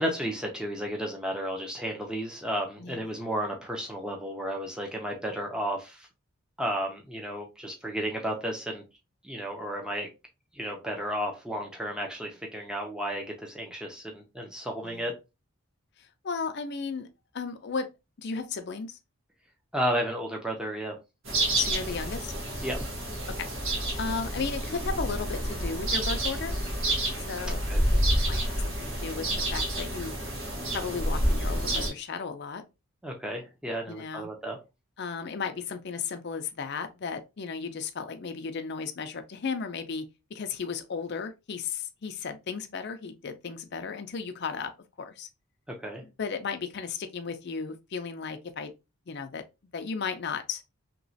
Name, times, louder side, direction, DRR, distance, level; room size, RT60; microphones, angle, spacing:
voice 1, 0.0-6.1 6.6-8.8 9.2-10.1 10.5-15.1 19.7-20.9 22.6-22.8 27.7-27.8 33.0-34.6 45.8-46.0, equal, 5° right, 0.5 m, -33 dB
voice 2, 16.0-17.1 17.3-17.9 18.2-19.0 21.5-22.3 23.4-23.5 23.7-26.5 27.3-27.6 27.9-29.3 29.5-30.1 30.7-32.6 33.9-34.3 35.0-40.0 40.3-44.7 45.0-45.3 46.2-48.7 49.1-49.4 49.7-50.6, left 5 dB, 50° left, 0.4 m, -35 dB
sound 1, 21.2-31.9, right 1 dB, 55° right, 1.3 m, -29 dB
3.0 x 2.9 x 2.7 m
head